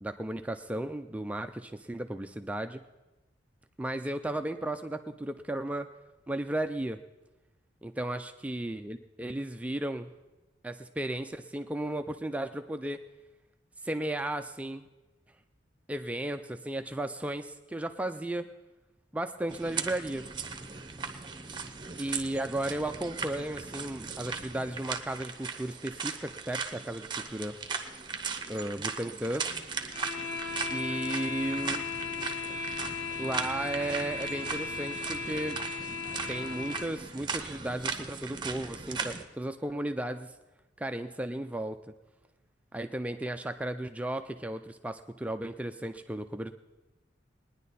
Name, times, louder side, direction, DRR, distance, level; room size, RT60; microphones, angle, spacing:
voice 1, 0.0-2.8 3.8-5.9 6.3-7.0 7.8-10.1 10.6-13.0 13.8-14.8 15.9-18.5 19.1-20.3 22.0-27.5 28.5-29.5 30.7-31.8 33.2-35.6 36.3-40.3 40.8-41.8 42.7-46.5, right 1 dB, 5° right, 7 dB, 0.3 m, -34 dB
sound 1, 19.5-39.2, right 5 dB, 25° right, 0.8 m, -38 dB
sound 2, 29.9-37.0, left 4 dB, 80° left, 2.6 m, -36 dB
20.0 x 10.0 x 4.1 m, 1.1 s
head